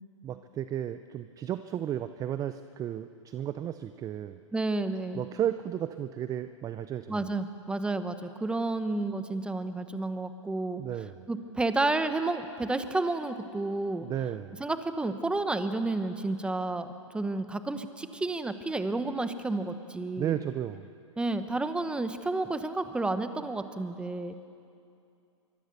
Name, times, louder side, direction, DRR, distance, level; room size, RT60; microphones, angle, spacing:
voice 1, 0.2-4.4 5.1-7.3 10.8-11.3 14.0-14.6 20.2-20.9, right 10 dB, 20° right, 11 dB, 0.6 m, -34 dB
voice 2, 4.5-5.2 7.1-10.8 11.3-14.0 14.6-16.9 17.1-20.4 21.2-24.3, right 2 dB, 5° right, 10 dB, 1.2 m, -31 dB
25.5 x 24.0 x 7.0 m, 2.6 s
hypercardioid pair, 120°, 17 cm